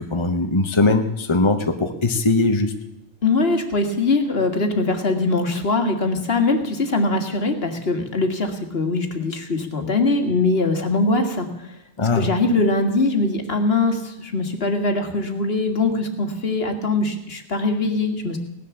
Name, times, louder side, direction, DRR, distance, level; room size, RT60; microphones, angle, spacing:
voice 1, 0.0-2.7 12.0-12.3, left 3 dB, 25° left, 5 dB, 1.1 m, -20 dB
voice 2, 3.2-11.8 12.2-18.4, left 3 dB, 60° left, 5 dB, 2.0 m, -22 dB
18.0 x 11.0 x 7.1 m, 0.86 s
omnidirectional pair, 1.2 m